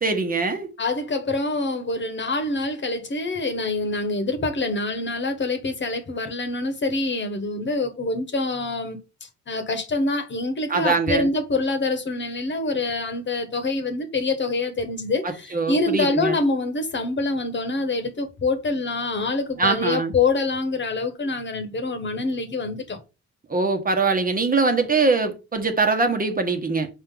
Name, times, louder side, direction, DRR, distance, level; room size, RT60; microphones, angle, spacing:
voice 1, 0.0-0.7 10.7-11.3 15.2-16.4 19.6-20.1 23.5-26.9, right 3 dB, 30° right, 1.3 m, -22 dB
voice 2, 0.8-9.0 9.5-23.0, left 3 dB, 40° left, 1.4 m, -25 dB
5.6 x 4.5 x 3.9 m
cardioid pair, 90°, 30 cm